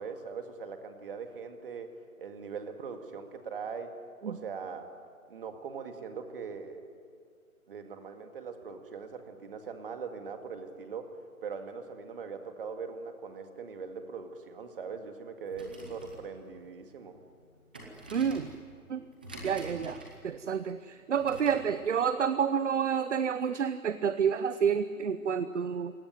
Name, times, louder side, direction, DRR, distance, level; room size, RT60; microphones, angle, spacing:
voice 1, 0.0-1.9 2.2-3.9 4.2-4.9 5.3-6.8 7.7-11.1 11.4-17.2, right 5 dB, 40° right, 6 dB, 2.2 m, -41 dB
sound 1, 15.4-21.8, right 1 dB, 5° right, 0.7 m, -48 dB
voice 2, 18.1-18.5 18.9-19.0 19.4-25.9, right 7 dB, 55° right, 13 dB, 0.9 m, -29 dB
27.0 x 17.5 x 9.3 m, 2.3 s
hypercardioid pair, 165°, 43 cm